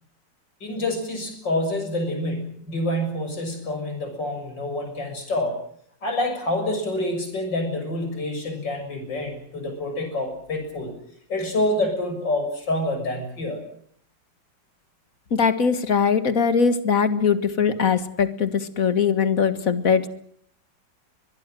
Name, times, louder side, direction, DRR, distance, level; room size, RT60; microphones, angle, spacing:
voice 1, 0.6-5.6 6.0-10.9 11.3-13.6, left 1 dB, 75° left, 5 dB, 7.5 m, -27 dB
voice 2, 15.3-20.1, left 6 dB, 50° left, 11 dB, 2.1 m, -21 dB
23.5 x 21.0 x 7.7 m, 0.63 s
omnidirectional pair, 2.0 m